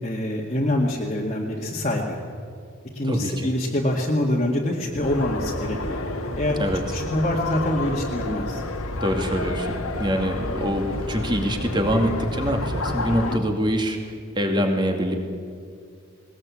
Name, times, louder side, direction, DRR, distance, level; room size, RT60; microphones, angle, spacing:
voice 1, 0.0-2.2 2.9-6.1 6.4-6.6 6.9-8.6 13.1-13.4, left 1 dB, 30° left, -3 dB, 2.0 m, -25 dB
voice 2, 3.1-3.5 6.6-6.8 9.0-14.0 14.3-15.2, equal, 20° right, 4 dB, 2.4 m, -24 dB
sound 1, 5.0-13.4, left 2 dB, 85° left, 1.9 m, -30 dB
20.5 x 20.0 x 8.5 m, 2.3 s
head